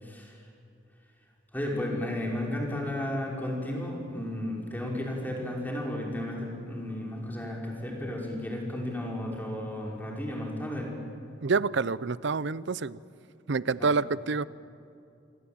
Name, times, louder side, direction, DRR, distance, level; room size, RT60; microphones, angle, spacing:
voice 1, 0.0-0.4 1.5-10.9 13.8-13.9, left 1 dB, 10° left, -1 dB, 5.4 m, -33 dB
voice 2, 11.4-13.0 13.5-14.5, right 4 dB, 70° right, 19 dB, 0.6 m, -27 dB
28.0 x 22.5 x 8.9 m, 2.6 s
head